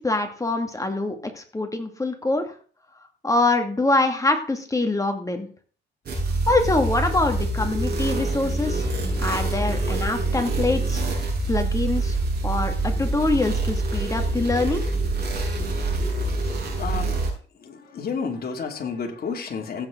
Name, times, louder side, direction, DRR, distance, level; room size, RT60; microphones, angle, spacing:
voice 1, 0.0-2.4 3.2-5.5 6.5-8.9 9.2-11.0 11.5-12.2 12.4-14.8, left 2 dB, 15° left, 5 dB, 2.4 m, -24 dB
sound 1, 6.1-17.3, right 2 dB, 55° right, 6.5 m, -25 dB
voice 2, 16.8-17.2 17.6-19.9, left 5 dB, 50° left, 3 dB, 2.9 m, -30 dB
15.5 x 8.9 x 3.9 m, 0.41 s
cardioid pair, 90°, 20 cm